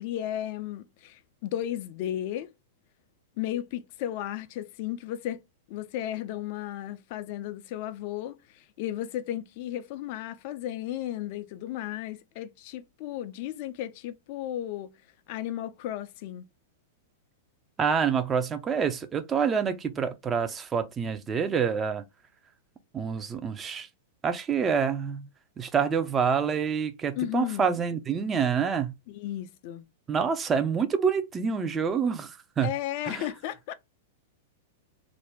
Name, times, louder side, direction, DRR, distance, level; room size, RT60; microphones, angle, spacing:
voice 1, 0.0-2.5 3.4-5.4 5.7-14.9 15.3-16.4 27.2-27.7 29.1-29.8 32.6-33.7, left 12 dB, 50° left, 0.4 m, -34 dB
voice 2, 17.8-22.0 22.9-23.9 24.2-25.3 25.6-28.9 30.1-32.7 33.1-33.3, right 6 dB, 20° right, 0.5 m, -27 dB
2.5 x 2.1 x 3.3 m
figure-of-eight pair, 100°, 0 cm